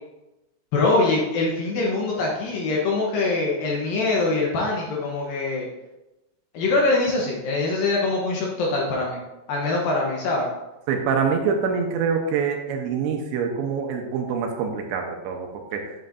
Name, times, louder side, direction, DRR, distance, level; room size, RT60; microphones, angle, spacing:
voice 1, 0.7-5.7 6.5-9.2 9.5-10.5, left 3 dB, 70° left, -2 dB, 2.2 m, -23 dB
voice 2, 10.9-15.9, right 6 dB, 80° right, 2 dB, 3.0 m, -25 dB
8.7 x 7.6 x 2.6 m, 0.98 s
omnidirectional pair, 5.4 m